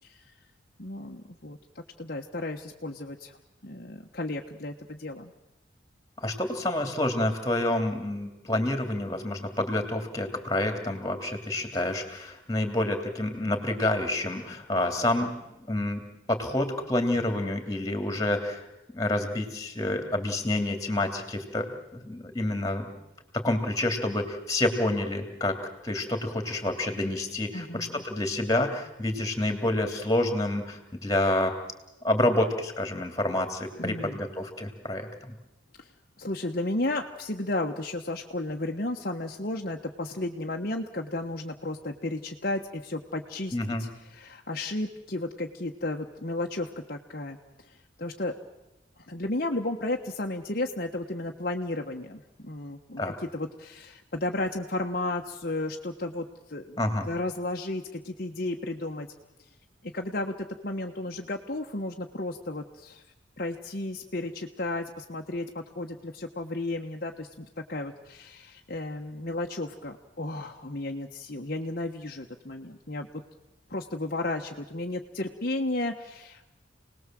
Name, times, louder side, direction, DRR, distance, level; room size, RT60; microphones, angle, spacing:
voice 1, 0.8-3.4 3.6-5.3 27.5-28.0 33.8-34.2 35.8-35.9 36.2-43.5 43.8-47.4 48.0-48.3 49.1-53.0 53.3-56.8 57.1-59.1 59.8-63.0 63.4-73.1 73.7-76.5, left 2 dB, 50° left, 2 dB, 1.3 m, -33 dB
voice 2, 6.2-18.7 18.9-21.7 21.9-22.9 23.3-25.6 25.8-31.5 32.0-35.3 43.5-43.8 53.0-53.1 56.8-57.1, left 1 dB, 20° left, 6 dB, 3.0 m, -28 dB
29.0 x 19.5 x 7.7 m, 0.96 s
head